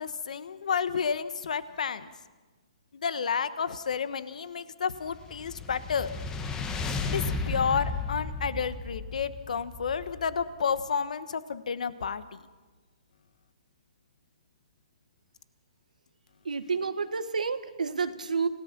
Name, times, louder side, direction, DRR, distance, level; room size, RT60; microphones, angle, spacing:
voice 1, 0.0-2.1 2.9-6.1 7.1-12.4, left 6 dB, 70° left, 14 dB, 1.3 m, -31 dB
sound 1, 5.1-10.5, left 4 dB, 15° left, 1.6 m, -34 dB
voice 2, 16.4-18.5, right 5 dB, 90° right, 10 dB, 1.5 m, -30 dB
29.5 x 17.5 x 6.1 m, 1.3 s
hypercardioid pair, 145°, 4 cm